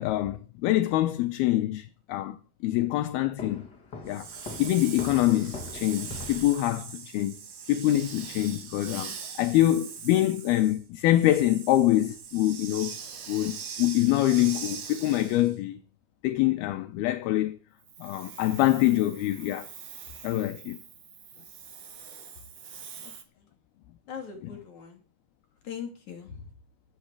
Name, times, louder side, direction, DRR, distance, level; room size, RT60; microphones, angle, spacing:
voice 1, 0.0-2.4 2.6-3.7 4.0-4.3 4.6-7.4 7.7-13.0 13.3-15.8 16.2-17.6 18.0-19.7 20.2-20.8, left 15 dB, 75° left, 2.7 m, -25 dB
Walk footsteps, 3.4-6.7, left 3 dB, 35° left, 2.1 m, -42 dB
Hiss, 4.1-15.6 17.8-23.2, right 7 dB, 55° right, 3.1 m, -42 dB
voice 2, 23.0-23.4 24.1-25.0 25.6-26.5, left 7 dB, 50° left, 3.8 m, -41 dB
25.0 x 8.5 x 4.8 m
omnidirectional pair, 4.7 m